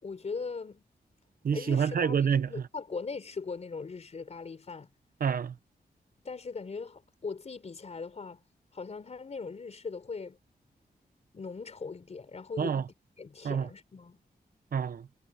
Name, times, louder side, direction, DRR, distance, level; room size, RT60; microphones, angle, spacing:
voice 1, 0.0-0.9 1.5-2.2 2.5-4.9 6.2-8.4 8.7-10.4 11.3-12.8 13.2-14.2, left 4 dB, 40° left, 3.8 m, -39 dB
voice 2, 1.4-2.6 5.2-5.6 12.6-12.8 13.4-13.7 14.7-15.1, right 7 dB, 65° right, 0.9 m, -28 dB
wide cardioid pair, 150°, 16 cm